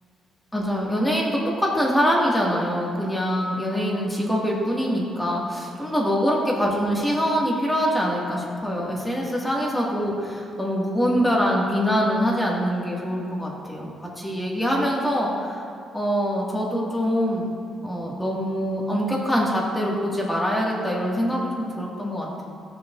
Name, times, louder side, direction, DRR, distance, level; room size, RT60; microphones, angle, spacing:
voice 1, 0.5-15.6 15.9-17.5 17.8-22.4, equal, 5° left, -4 dB, 2.1 m, -24 dB
15.5 x 6.9 x 2.7 m, 2.4 s
cardioid pair, 90°, 0 cm